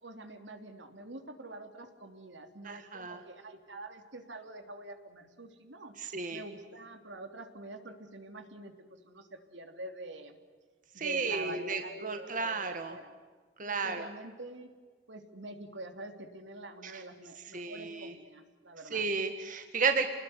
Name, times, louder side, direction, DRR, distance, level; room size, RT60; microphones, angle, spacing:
voice 1, 0.0-10.4 10.9-13.1 13.6-14.7 15.1-19.0, right 2 dB, 80° right, 6 dB, 3.3 m, -46 dB
voice 2, 2.6-3.2 6.0-6.4 11.0-12.9 13.6-14.1 16.8-17.0 17.5-18.1 18.9-20.1, right 4 dB, 45° right, 7 dB, 1.8 m, -33 dB
29.5 x 20.5 x 9.8 m, 1.5 s
head